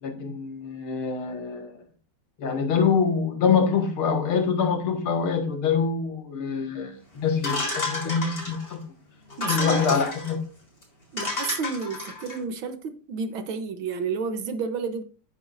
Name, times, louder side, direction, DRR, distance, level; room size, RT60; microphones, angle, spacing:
voice 1, 0.0-1.7 2.4-8.8 9.5-10.4, left 6 dB, 85° left, 2.5 m, -25 dB
sound 1, 7.4-8.7 9.3-10.3 10.8-10.9 11.2-12.4, left 2 dB, 25° left, 4.2 m, -31 dB
voice 2, 9.4-10.0 11.1-15.0, right 5 dB, 70° right, 1.8 m, -31 dB
11.5 x 9.1 x 2.6 m
omnidirectional pair, 2.3 m